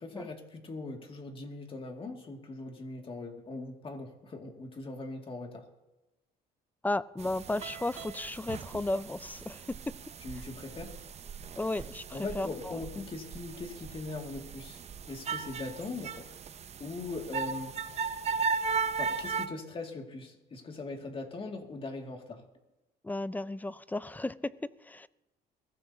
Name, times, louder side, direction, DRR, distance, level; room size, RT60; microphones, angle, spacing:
voice 1, 0.0-5.6 10.2-10.9 12.1-14.8 15.0-16.3 16.8-17.7 18.9-22.4, left 3 dB, 30° left, 2.2 m, -40 dB
voice 2, 6.8-9.8 11.6-12.8 23.0-24.6 24.8-25.1, left 2 dB, 10° left, 0.4 m, -34 dB
sound 1, 7.2-19.5, right 5 dB, 40° right, 0.7 m, -37 dB
22.5 x 15.5 x 2.8 m
cardioid pair, 110°, 17 cm